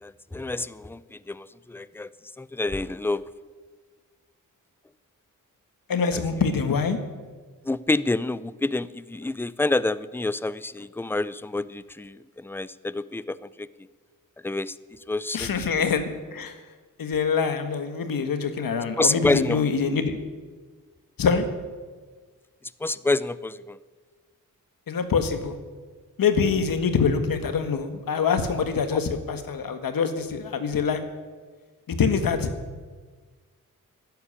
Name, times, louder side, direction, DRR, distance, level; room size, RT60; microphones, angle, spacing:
voice 1, 0.0-2.1 2.4-3.3 7.6-13.7 14.4-14.7 15.1-15.5 15.8-15.9 19.0-19.6 22.8-23.8, left 2 dB, 5° left, 17 dB, 0.5 m, -28 dB
voice 2, 5.9-7.0 15.3-16.6 17.0-20.2 21.2-21.4 24.9-25.6 26.2-31.0 31.9-32.5, left 5 dB, 90° left, 8 dB, 1.6 m, -25 dB
12.5 x 11.5 x 9.8 m, 1.5 s
wide cardioid pair, 105°, 33 cm